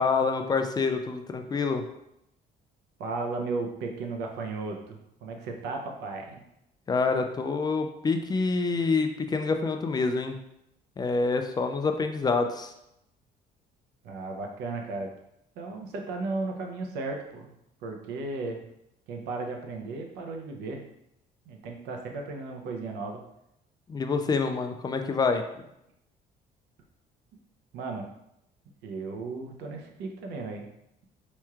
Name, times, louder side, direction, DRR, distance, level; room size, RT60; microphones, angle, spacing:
voice 1, 0.0-1.8 6.9-10.4 11.0-12.7 23.9-25.4, left 4 dB, 25° left, 6 dB, 0.3 m, -27 dB
voice 2, 3.0-6.4 14.0-15.1 15.6-17.5 17.8-18.6 19.1-20.8 21.5-23.2 27.7-28.1 28.8-30.7, right 3 dB, 85° right, 2 dB, 0.7 m, -35 dB
4.3 x 3.0 x 2.4 m, 0.81 s
cardioid pair, 110°, 17 cm